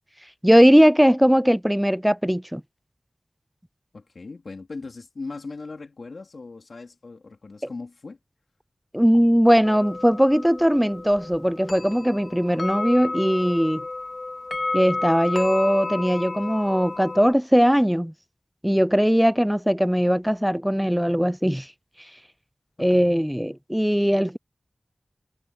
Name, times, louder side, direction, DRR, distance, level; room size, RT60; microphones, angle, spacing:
voice 1, 0.4-2.6 8.9-13.8 14.7-18.1 18.6-21.7 22.8-24.4, equal, 5° right, 0.4 m, -19 dB
voice 2, 3.9-8.2 22.8-23.1, left 3 dB, 85° left, 3.6 m, -39 dB
sound 1, 9.6-17.3, left 3 dB, 60° left, 1.9 m, -32 dB
wide cardioid pair, 60°, 0 cm